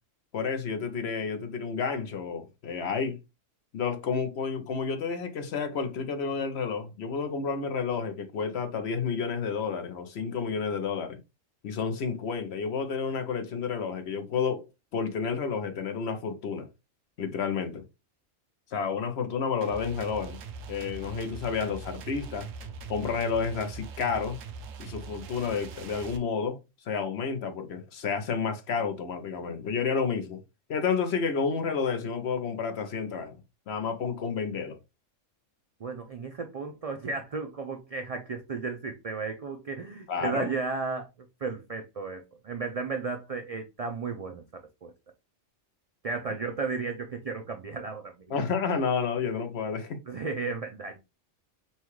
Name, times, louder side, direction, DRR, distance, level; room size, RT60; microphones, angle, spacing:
voice 1, 0.3-3.2 3.7-11.2 11.6-14.7 14.9-16.7 17.2-17.8 18.7-20.4 20.7-22.5 22.9-24.4 24.8-26.6 26.9-30.4 30.7-33.4 33.7-34.8 40.1-40.5 48.3-50.0, left 5 dB, 60° left, 0.9 m, -30 dB
sound 1, 19.6-26.2, right 5 dB, 85° right, 1.0 m, -42 dB
voice 2, 35.8-41.1 41.4-44.4 44.8-44.9 46.0-48.3 50.1-51.0, right 4 dB, 65° right, 0.3 m, -34 dB
5.6 x 2.3 x 3.0 m
omnidirectional pair, 1.3 m